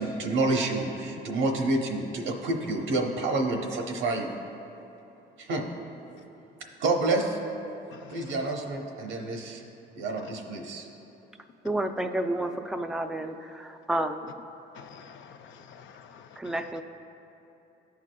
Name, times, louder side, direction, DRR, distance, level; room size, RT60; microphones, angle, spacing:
voice 1, 0.0-4.3 5.4-5.6 6.8-7.4 8.1-9.6 10.0-10.8, right 2 dB, 80° right, 0.9 m, -28 dB
voice 2, 7.9-8.5 14.7-16.7, left 7 dB, 70° left, 0.5 m, -49 dB
voice 3, 11.6-14.3 16.4-16.8, right 1 dB, 5° right, 0.4 m, -30 dB
14.0 x 4.8 x 2.3 m
cardioid pair, 90°, 20 cm